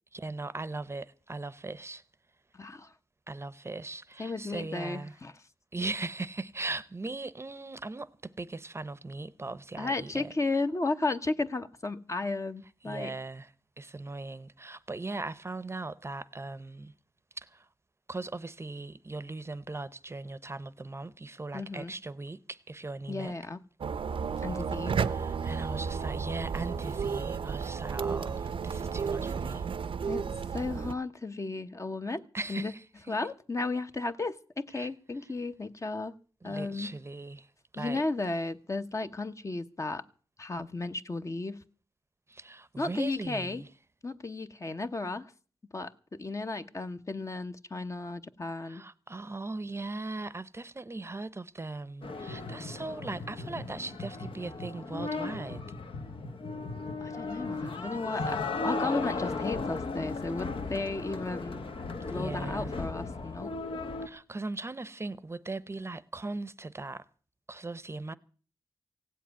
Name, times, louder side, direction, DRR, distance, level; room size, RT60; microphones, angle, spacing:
voice 1, 0.1-2.0 3.3-5.2 5.7-10.3 12.8-16.9 17.4-17.7 18.1-23.3 25.0-29.7 32.3-33.1 34.7-34.9 36.4-38.0 42.3-43.7 48.6-55.6 62.1-62.7 64.0-67.0 67.5-68.1, right 3 dB, 30° right, 0.7 m, -39 dB
voice 2, 2.5-2.9 4.2-5.3 9.8-13.2 21.5-21.9 23.1-23.6 24.4-25.0 30.1-32.2 32.5-32.7 33.1-36.1 36.4-36.9 37.8-40.0 40.4-41.6 42.8-43.6 44.0-45.3 45.7-48.8 57.0-61.6 62.1-63.6, left 3 dB, 35° left, 0.8 m, -34 dB
sound 1, 23.8-30.9, right 6 dB, 75° right, 0.6 m, -32 dB
sound 2, 52.0-64.1, left 3 dB, 75° left, 1.2 m, -36 dB
16.5 x 7.5 x 9.3 m
wide cardioid pair, 90°, 9 cm